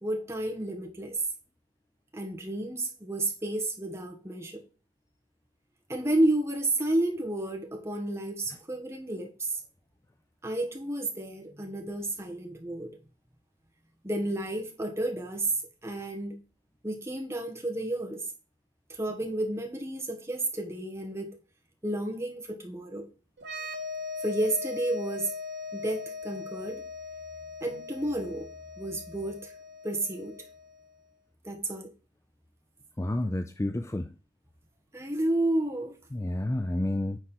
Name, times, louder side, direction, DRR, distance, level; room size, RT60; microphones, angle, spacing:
voice 1, 0.0-1.2 2.1-4.6 5.9-9.6 10.4-13.0 14.0-15.6 15.8-16.4 16.8-18.2 18.9-21.3 21.8-23.1 24.2-25.3 25.7-26.8 27.6-28.5 28.8-29.5 29.8-30.4 31.4-31.9 34.9-35.9, right 1 dB, 15° right, 1.4 m, -31 dB
sound 1, 23.4-30.9, left 4 dB, 70° right, 1.7 m, -40 dB
voice 2, 33.0-34.1 36.1-37.2, left 1 dB, 15° left, 0.4 m, -30 dB
9.3 x 4.4 x 4.4 m
head